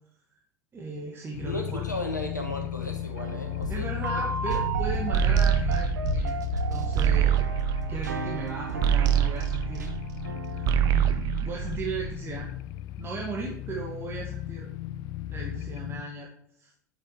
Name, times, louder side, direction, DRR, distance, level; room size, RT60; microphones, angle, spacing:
voice 1, 0.7-1.8 3.7-7.3 7.9-9.9 10.5-12.5 13.0-14.7 15.3-16.3 16.6-16.7, right 4 dB, 25° right, -2 dB, 2.0 m, -37 dB
sound 1, 1.3-16.0, left 13 dB, 45° left, 0.6 m, -35 dB
voice 2, 1.4-4.2, left 1 dB, 90° left, 2 dB, 1.2 m, -35 dB
sound 2, 2.8-11.1, right 3 dB, 75° right, 1.1 m, -32 dB
sound 3, 5.1-10.3 10.6-12.3, right 11 dB, 40° right, 0.8 m, -25 dB
9.0 x 7.3 x 4.8 m, 0.66 s
figure-of-eight pair, 75°, 9 cm